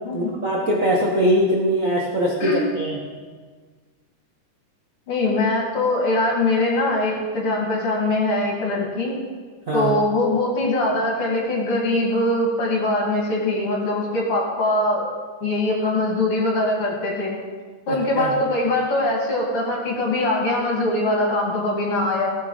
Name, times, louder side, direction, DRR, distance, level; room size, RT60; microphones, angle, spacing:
voice 1, 0.1-3.0 9.7-9.9 17.9-18.3, equal, 90° right, -3 dB, 0.7 m, -22 dB
voice 2, 5.1-9.1 9.7-15.1 15.4-17.4 17.9-22.4, left 2 dB, 45° left, -2 dB, 3.0 m, -22 dB
17.5 x 6.8 x 4.9 m, 1.5 s
omnidirectional pair, 3.9 m